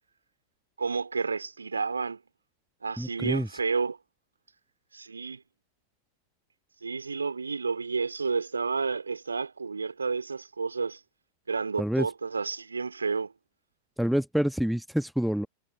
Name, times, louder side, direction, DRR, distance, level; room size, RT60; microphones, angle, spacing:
voice 1, 0.8-2.2 2.8-4.0 4.9-5.4 6.8-11.0 11.5-13.3, right 4 dB, 75° right, 2.9 m, -31 dB
voice 2, 3.0-3.5 11.8-12.1 14.0-15.5, equal, ahead, 1.2 m, -27 dB
figure-of-eight pair, 90°, 0 cm